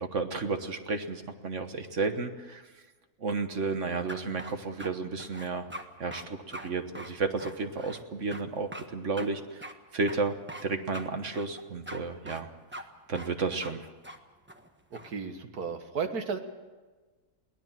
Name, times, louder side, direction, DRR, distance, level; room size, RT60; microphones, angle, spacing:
voice 1, 0.0-2.7 3.2-5.7 6.0-10.3 10.6-12.5 13.1-13.9, right 4 dB, 50° right, 7 dB, 1.5 m, -32 dB
sound 1, 4.1-4.9 5.2-5.9 6.1-6.3 6.5-6.7 7.0-8.0 8.3-8.4 8.7-8.9 9.2-9.3 9.6-9.7 10.1-10.7 10.9-11.1 11.3-12.0 12.3-12.4 12.7-12.8 13.2-13.3 13.6-13.7 14.0-14.2 14.5-15.1, right 1 dB, 10° right, 1.2 m, -42 dB
voice 2, 14.9-16.4, right 5 dB, 75° right, 7 dB, 2.1 m, -34 dB
23.0 x 17.5 x 7.5 m, 1.3 s
omnidirectional pair, 1.6 m